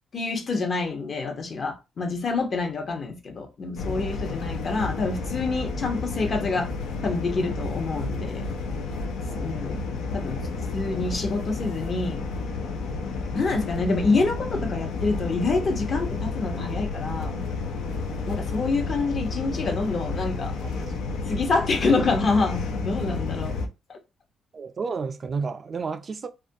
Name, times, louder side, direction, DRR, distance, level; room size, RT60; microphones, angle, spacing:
voice 1, 0.1-6.7 7.0-8.5 9.4-10.4 10.7-12.3 13.3-17.4 18.3-20.5 21.3-23.5 23.9-24.0, left 3 dB, 45° left, 0.7 m, -27 dB
sound 1, 3.8-23.7, left 3 dB, 85° left, 0.4 m, -31 dB
voice 2, 20.6-20.9 21.2-21.4 24.5-26.3, right 5 dB, 40° right, 0.3 m, -32 dB
2.4 x 2.2 x 2.6 m
cardioid pair, 90°, 0 cm